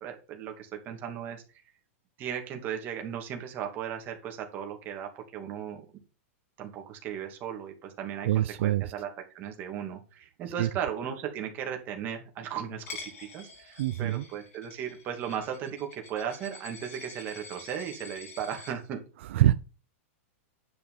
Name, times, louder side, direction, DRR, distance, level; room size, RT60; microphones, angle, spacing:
voice 1, 0.0-1.4 2.2-5.8 6.6-19.0, right 8 dB, 25° right, 2.5 m, -36 dB
voice 2, 8.2-8.9 10.6-10.7 13.8-14.2 19.3-19.5, right 13 dB, 55° right, 0.6 m, -24 dB
Coin (dropping), 12.9-18.7, left 3 dB, 80° left, 4.8 m, -47 dB
10.0 x 6.1 x 5.5 m
supercardioid pair, 165°, 8 cm